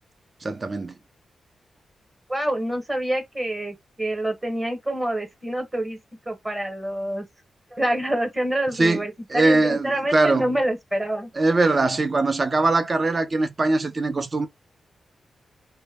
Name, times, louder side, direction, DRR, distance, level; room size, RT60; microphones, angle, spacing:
voice 1, 0.4-0.9 8.7-10.5 11.3-14.5, right 2 dB, 35° right, 0.5 m, -22 dB
voice 2, 2.3-6.0 6.3-7.2 7.7-11.3, right 1 dB, 15° right, 0.9 m, -27 dB
2.1 x 2.0 x 3.4 m
wide cardioid pair, 120°, 0 cm